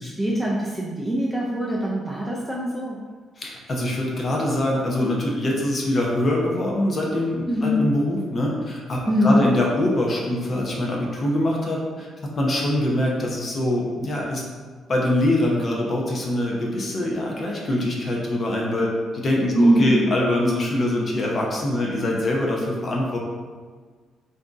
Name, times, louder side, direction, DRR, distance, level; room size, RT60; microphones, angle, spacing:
voice 1, 0.0-3.0 7.5-7.8 9.1-9.5 19.5-20.1, equal, ahead, -5 dB, 0.4 m, -22 dB
voice 2, 3.4-14.4 14.9-23.2, left 1 dB, 30° left, -2 dB, 0.7 m, -24 dB
3.5 x 2.6 x 3.8 m, 1.5 s
cardioid pair, 165°, 0 cm